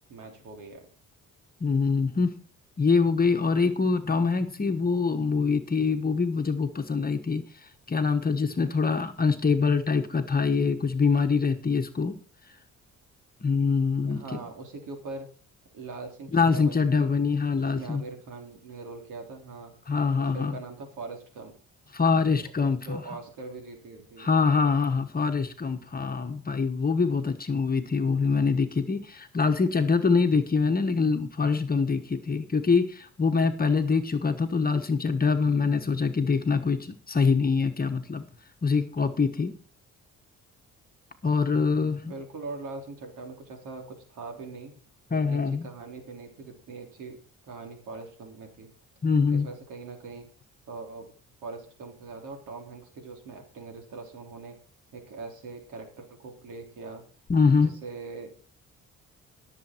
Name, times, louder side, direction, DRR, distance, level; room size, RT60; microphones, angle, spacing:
voice 1, 0.1-0.9 14.1-15.3 15.7-17.1 17.5-19.8 20.2-21.5 22.6-24.3 42.0-44.8 45.1-47.2 47.5-48.7 49.3-50.3 50.7-51.1 51.4-54.6 54.9-57.0 57.5-58.3, right 3 dB, 85° right, 4 dB, 3.5 m, -41 dB
voice 2, 1.6-2.3 2.8-12.2 13.4-14.4 16.3-18.0 19.9-20.6 21.9-23.0 24.2-38.3 38.6-39.5 41.2-42.1 45.1-45.7 49.0-49.5 57.3-57.7, left 5 dB, 30° left, 5 dB, 1.2 m, -24 dB
17.5 x 7.2 x 4.5 m, 0.40 s
cardioid pair, 90°, 30 cm